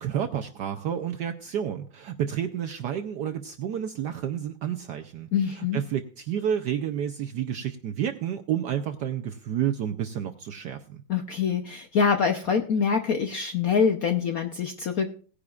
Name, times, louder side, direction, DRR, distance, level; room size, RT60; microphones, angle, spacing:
voice 1, 0.0-11.0, right 9 dB, 75° right, 7 dB, 1.0 m, -30 dB
voice 2, 5.3-5.8 11.1-15.1, left 6 dB, 65° left, 5 dB, 0.9 m, -25 dB
18.5 x 10.0 x 2.4 m, 0.42 s
omnidirectional pair, 2.4 m